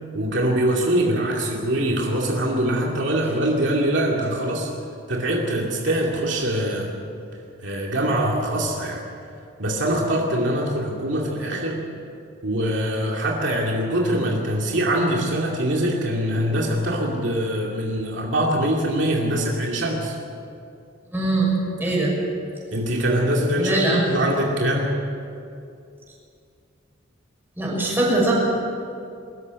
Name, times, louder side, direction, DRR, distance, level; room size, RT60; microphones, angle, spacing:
voice 1, 0.1-4.7 5.1-6.9 7.6-9.0 9.6-11.8 12.4-20.2 22.7-23.8 24.1-24.9, right 1 dB, 65° right, -1 dB, 2.7 m, -23 dB
voice 2, 21.1-21.5 21.8-22.1 23.6-24.0 27.6-28.3, right 2 dB, 10° right, -4 dB, 6.5 m, -21 dB
23.0 x 14.0 x 9.7 m, 2.5 s
head